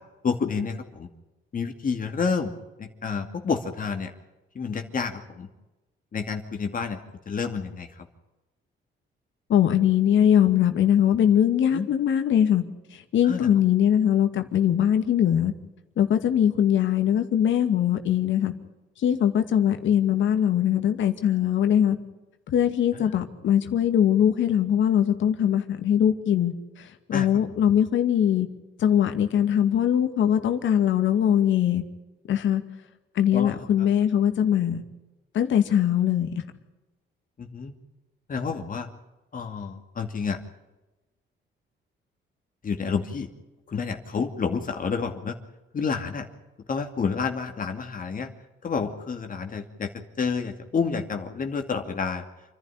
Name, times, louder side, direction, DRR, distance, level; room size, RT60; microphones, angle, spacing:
voice 1, 0.2-1.1 1.5-2.5 2.8-4.1 4.5-5.5 6.1-7.0 7.3-7.9 11.7-11.9 13.2-13.5 22.9-23.1 27.1-27.3 33.3-33.9 37.4-37.7 38.3-38.9 39.3-40.4 42.6-43.3 43.7-45.3 45.7-46.3 46.7-48.3 48.6-49.9 50.2-52.2, left 5 dB, 45° left, 4 dB, 2.5 m, -29 dB
voice 2, 9.5-12.6 13.1-15.5 16.0-18.5 19.0-22.0 22.5-28.5 28.8-31.8 32.3-32.6 33.2-34.8 35.3-36.3, left 9 dB, 70° left, 8 dB, 2.3 m, -21 dB
28.5 x 11.0 x 9.9 m, 1.1 s
cardioid pair, 90°, 20 cm